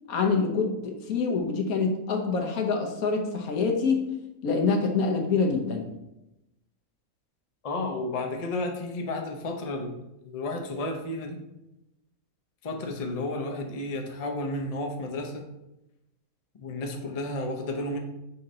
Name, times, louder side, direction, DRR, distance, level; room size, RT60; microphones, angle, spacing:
voice 1, 0.1-4.0 4.4-5.8, left 4 dB, 80° left, 3 dB, 1.3 m, -26 dB
voice 2, 7.6-10.0 10.2-11.4 12.6-15.4 16.6-18.0, left 2 dB, 40° left, 3 dB, 0.5 m, -32 dB
5.8 x 3.8 x 4.2 m, 0.93 s
omnidirectional pair, 1.5 m